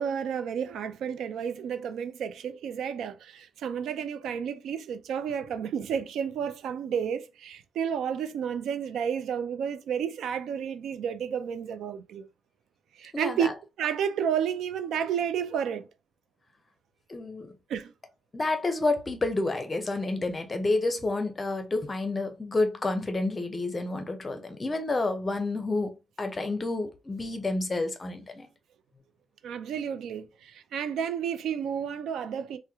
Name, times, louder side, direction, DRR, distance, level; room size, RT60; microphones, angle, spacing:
voice 1, 0.0-12.3 13.0-13.5 13.8-15.9 17.7-17.9 29.4-32.6, right 8 dB, 85° right, 0.4 m, -31 dB
voice 2, 13.1-13.5 17.1-17.6 18.3-28.5, left 2 dB, 20° left, 0.5 m, -29 dB
2.9 x 2.1 x 3.4 m
cardioid pair, 150°, 0 cm